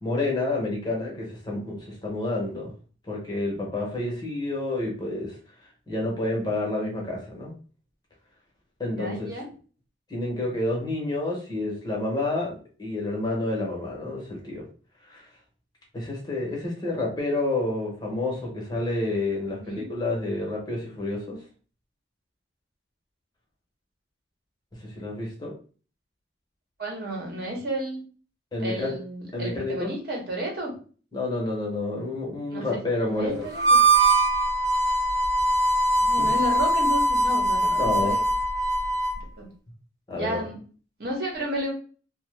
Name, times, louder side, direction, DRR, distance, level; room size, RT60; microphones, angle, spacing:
voice 1, 0.0-2.7 3.1-5.3 5.9-7.5 8.8-9.3 10.1-14.6 15.1-15.3 15.9-21.4 24.8-25.5 28.5-29.0 29.3-29.9 31.1-33.5 36.2-36.3 37.7-38.1 40.1-40.4, left 2 dB, 25° left, -2 dB, 0.8 m, -29 dB
voice 2, 8.9-9.5 19.5-19.9 26.8-28.0 28.6-30.8 32.5-32.8 33.1-33.8 36.0-38.2 39.4-39.5 40.1-40.6 41.0-41.7, right 1 dB, 55° right, -1 dB, 0.9 m, -32 dB
Harmonica, 33.5-39.2, right 2 dB, 20° right, 0.5 m, -22 dB
2.7 x 2.0 x 3.2 m, 0.39 s
head